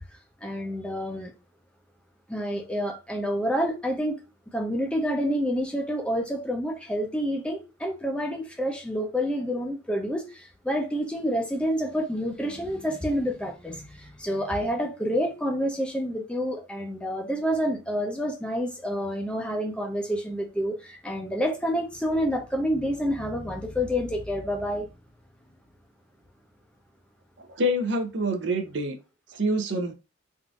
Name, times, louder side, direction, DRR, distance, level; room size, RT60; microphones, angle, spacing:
voice 1, 0.4-1.3 2.3-4.2 4.5-24.9, equal, 5° left, 0.5 m, -28 dB
voice 2, 27.4-29.0 29.3-29.9, right 1 dB, 60° right, 0.6 m, -26 dB
3.6 x 2.6 x 2.3 m
head